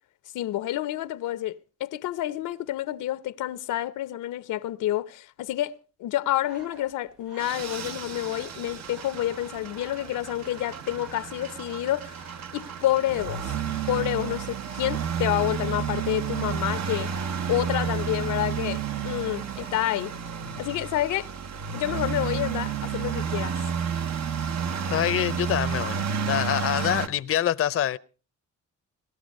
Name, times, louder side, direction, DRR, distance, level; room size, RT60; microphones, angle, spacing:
voice 1, 0.3-12.2 12.5-13.5 13.9-17.1 17.5-20.1 20.6-21.3 21.7-23.5, left 13 dB, 85° left, 0.8 m, -29 dB
sound 1, 6.4-19.9, right 4 dB, 90° right, 3.1 m, -52 dB
sound 2, 7.4-27.1, right 7 dB, 60° right, 1.2 m, -31 dB
voice 2, 24.9-26.0 26.3-28.0, left 11 dB, 50° left, 0.7 m, -25 dB
18.5 x 12.5 x 5.3 m
cardioid pair, 90°, 30 cm